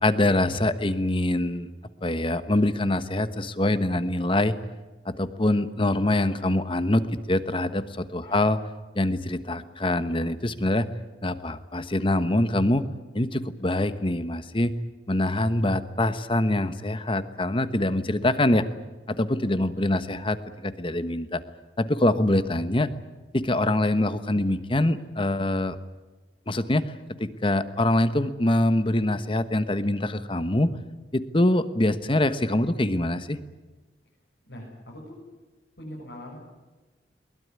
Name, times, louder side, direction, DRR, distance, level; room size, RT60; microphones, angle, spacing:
voice 1, 0.0-1.7 2.0-4.5 5.1-7.0 7.3-8.6 8.9-10.9 11.2-12.9 13.1-14.7 15.1-18.6 19.1-21.4 21.8-22.9 23.3-25.8 26.5-26.9 27.2-30.7 31.1-33.4, left 1 dB, 30° left, 12 dB, 1.2 m, -24 dB
voice 2, 19.4-20.0 34.4-35.2 35.8-36.4, equal, 75° left, -3 dB, 7.5 m, -42 dB
22.5 x 20.5 x 9.6 m, 1.2 s
head